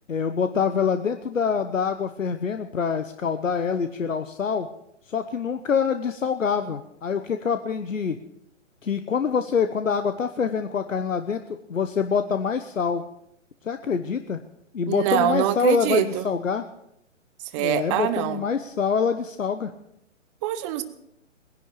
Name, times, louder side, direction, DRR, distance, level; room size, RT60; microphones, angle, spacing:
voice 1, 0.1-4.7 5.1-8.2 8.8-13.0 13.6-14.4 14.7-16.6 17.6-19.7, left 6 dB, 80° left, 9 dB, 1.1 m, -25 dB
voice 2, 14.9-16.3 17.5-18.4 20.4-20.8, right 12 dB, 25° right, 12 dB, 1.0 m, -24 dB
19.5 x 11.0 x 6.7 m, 0.78 s
hypercardioid pair, 135°, 38 cm